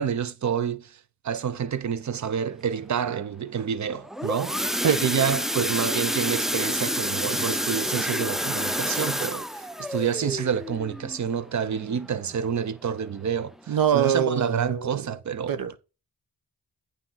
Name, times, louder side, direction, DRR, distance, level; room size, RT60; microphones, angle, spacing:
voice 1, 0.0-4.6 5.0-15.6, right 7 dB, 50° right, 1.0 m, -28 dB
sound 1, 3.9-12.6 13.0-13.2 13.5-13.6 14.1-14.2, equal, ahead, 0.5 m, -29 dB
voice 2, 13.7-15.0 15.5-15.8, right 8 dB, 75° right, 1.1 m, -23 dB
8.9 x 3.7 x 5.7 m
cardioid pair, 75°, 35 cm